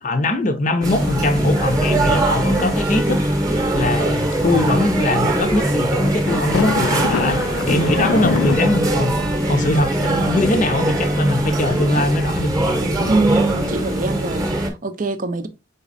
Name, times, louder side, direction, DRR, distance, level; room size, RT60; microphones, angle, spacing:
voice 1, 0.0-3.2 3.7-7.4 7.7-9.1 9.5-12.5, left 2 dB, 40° left, 0.6 m, -21 dB
sound 1, 0.8-14.7, right 1 dB, 20° right, 0.8 m, -21 dB
sound 2, 0.9-14.5, left 5 dB, 85° left, 0.3 m, -30 dB
voice 2, 13.1-15.5, right 3 dB, 40° right, 0.5 m, -23 dB
4.0 x 4.0 x 2.6 m
head